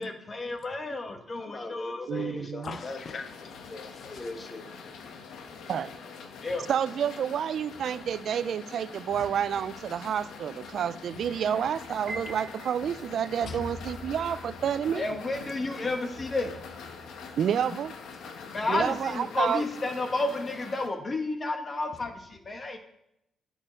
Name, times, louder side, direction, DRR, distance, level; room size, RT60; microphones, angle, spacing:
voice 1, 0.0-3.0 3.7-4.6 6.4-6.7 14.9-16.5 18.5-22.8, left 2 dB, 30° left, 1.3 m, -32 dB
voice 2, 2.1-2.8 5.7-5.9 6.7-15.0 17.4-17.9 18.7-19.6, right 8 dB, 65° right, 0.3 m, -29 dB
voice 3, 2.6-4.5 5.0-5.7 6.4-6.6 9.1-9.3 11.1-11.6 12.3-12.4 13.4-14.0 16.9-17.4 17.7-17.8 18.2-18.9, left 4 dB, 50° left, 0.7 m, -44 dB
sound 1, 2.7-20.9, left 5 dB, 85° left, 1.1 m, -44 dB
Piano, 12.1-13.4, right 2 dB, 35° right, 4.0 m, -41 dB
8.9 x 8.0 x 4.4 m
cardioid pair, 110°, 0 cm